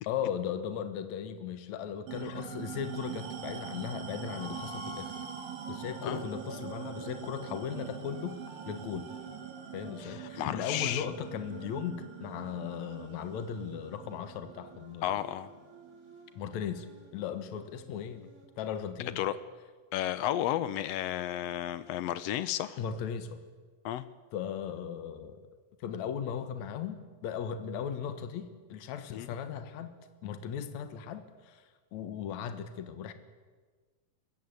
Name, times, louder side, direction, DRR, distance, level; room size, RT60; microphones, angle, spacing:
voice 1, 0.1-5.2 5.7-8.4 8.7-9.1 9.7-15.1 16.4-16.9 17.1-18.2 18.6-19.2 22.8-23.4 24.3-25.4 25.8-29.9 30.2-31.6 31.9-33.1, left 8 dB, 60° left, 10 dB, 2.5 m, -37 dB
sound 1, 2.1-16.9, right 9 dB, 85° right, 3.6 m, -44 dB
sound 2, 2.3-3.9 4.3-11.7 12.1-18.5, equal, 20° right, 4.0 m, -52 dB
voice 2, 10.0-11.1 15.0-15.5 19.2-19.4 19.9-22.8 23.8-24.0 29.1-29.3, left 12 dB, 80° left, 14 dB, 1.5 m, -32 dB
24.5 x 14.5 x 9.5 m, 1.4 s
omnidirectional pair, 3.9 m